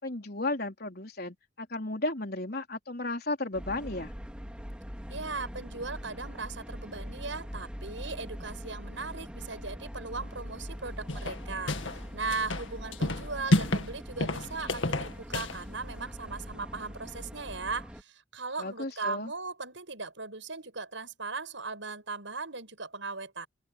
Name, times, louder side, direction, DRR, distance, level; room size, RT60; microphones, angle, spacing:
voice 1, 0.0-4.1 18.6-19.3, left 2 dB, 50° left, 4.3 m, -34 dB
sound 1, 3.5-18.0, equal, 5° right, 2.8 m, -42 dB
voice 2, 5.1-23.5, right 4 dB, 75° right, 6.4 m, -38 dB
sound 2, 11.1-12.0 12.3-13.9 14.2-15.6, left 1 dB, 75° left, 2.0 m, -29 dB
head